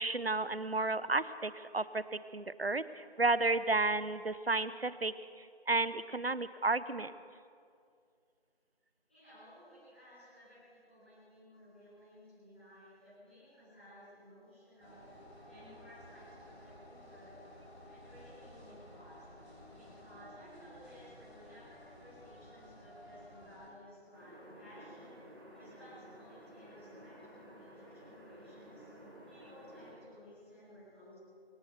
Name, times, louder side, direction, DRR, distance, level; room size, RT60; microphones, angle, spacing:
voice 1, 0.0-7.1, right 3 dB, 65° right, 15 dB, 0.9 m, -32 dB
voice 2, 9.1-15.1 15.5-17.4 17.9-19.3 19.7-28.9 29.3-31.2, equal, 10° left, -16 dB, 3.5 m, -57 dB
sound 1, 14.8-23.7, left 1 dB, 80° left, 6.7 m, -54 dB
sound 2, 24.1-29.9, equal, 20° right, 3.1 m, -53 dB
26.0 x 15.0 x 7.0 m, 2.3 s
figure-of-eight pair, 175°, 32 cm